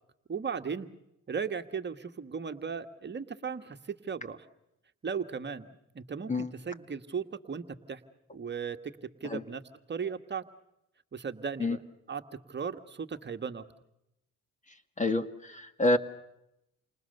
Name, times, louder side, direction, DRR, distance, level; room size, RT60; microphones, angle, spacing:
voice 1, 0.3-0.9 1.3-4.4 5.0-8.0 8.3-8.9 9.2-9.6 9.9-10.4 11.1-11.8 12.1-12.2 12.5-13.6, right 6 dB, 35° right, 7 dB, 1.6 m, -36 dB
voice 2, 15.0-16.0, left 2 dB, 25° left, 10 dB, 2.1 m, -27 dB
29.5 x 26.5 x 6.7 m, 0.85 s
cardioid pair, 90°, 30 cm